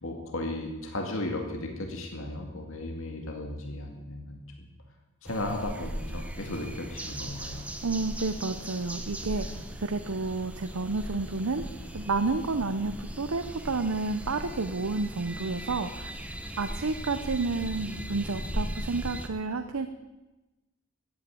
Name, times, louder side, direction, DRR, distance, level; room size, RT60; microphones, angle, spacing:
voice 1, 0.0-4.7 5.2-7.7, left 1 dB, 70° left, 2 dB, 2.1 m, -35 dB
sound 1, 5.2-19.3, right 1 dB, 5° right, 0.9 m, -38 dB
voice 2, 7.8-11.6 11.9-16.1 16.6-19.9, right 3 dB, 85° right, 8 dB, 0.8 m, -30 dB
14.5 x 9.6 x 8.7 m, 1.1 s
head